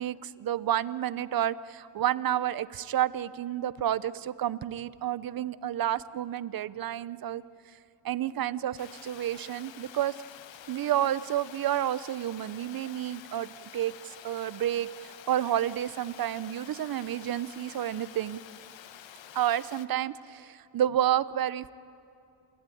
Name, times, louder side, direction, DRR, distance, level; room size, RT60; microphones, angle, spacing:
voice 1, 0.0-7.4 8.0-10.1 10.7-18.4 19.3-21.7, right 11 dB, 50° right, 16 dB, 0.7 m, -30 dB
Water, 8.8-19.9, left 10 dB, 65° left, 1.1 m, -49 dB
29.0 x 15.5 x 9.2 m, 2.5 s
cardioid pair, 130°, 48 cm